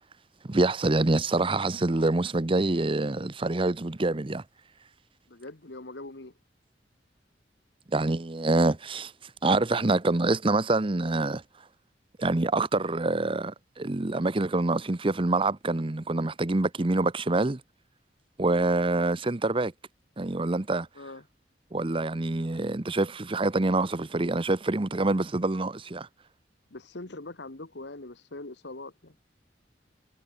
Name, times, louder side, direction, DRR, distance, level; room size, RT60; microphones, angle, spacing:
voice 1, 0.5-4.4 7.9-9.1 9.4-11.4 12.2-17.6 18.4-19.7 20.2-20.9 21.7-26.1, right 2 dB, 30° right, 0.8 m, -26 dB
voice 2, 5.3-6.3 21.0-21.2 26.7-29.2, left 2 dB, 75° left, 1.7 m, -42 dB
head